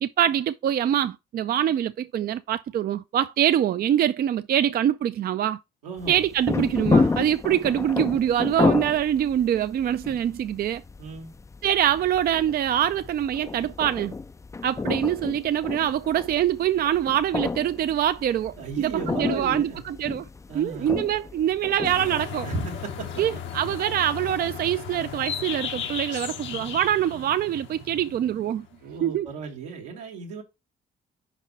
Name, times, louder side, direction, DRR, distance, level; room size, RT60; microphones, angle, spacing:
voice 1, 0.0-5.6 6.1-10.8 11.6-14.1 14.6-20.3 20.5-22.5 23.2-28.7 29.0-29.3, right 10 dB, 50° right, 0.4 m, -24 dB
voice 2, 5.8-6.2 11.0-11.3 18.6-19.8 20.5-20.9 22.4-23.4 28.8-30.4, right 4 dB, 90° right, 1.6 m, -35 dB
sound 1, 6.0-22.2, left 3 dB, 15° left, 0.4 m, -30 dB
sound 2, 21.8-29.0, left 8 dB, 70° left, 1.0 m, -36 dB
5.2 x 4.2 x 5.1 m
hypercardioid pair, 50°, 20 cm